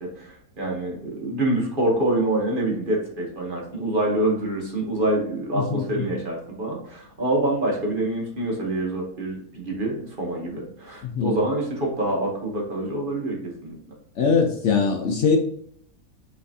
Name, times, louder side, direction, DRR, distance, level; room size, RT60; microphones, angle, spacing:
voice 1, 0.2-13.8, right 1 dB, 40° right, -2 dB, 1.2 m, -26 dB
voice 2, 5.5-6.1 11.0-11.4 14.2-15.4, left 5 dB, 65° left, 2 dB, 0.8 m, -22 dB
5.6 x 3.3 x 2.7 m, 0.66 s
omnidirectional pair, 1.5 m